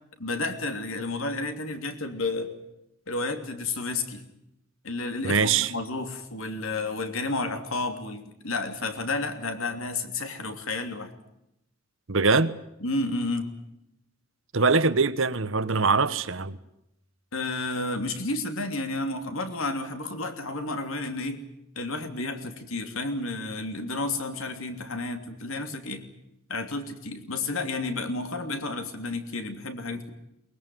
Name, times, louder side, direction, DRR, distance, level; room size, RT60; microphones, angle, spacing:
voice 1, 0.2-2.5 3.1-4.2 4.8-11.1 12.8-13.5 17.3-21.4 21.7-26.0 26.5-30.1, left 2 dB, 65° left, 3.0 m, -31 dB
voice 2, 5.2-5.7 12.1-12.5 14.5-16.6, right 4 dB, 60° right, 1.2 m, -22 dB
22.5 x 21.0 x 9.4 m
head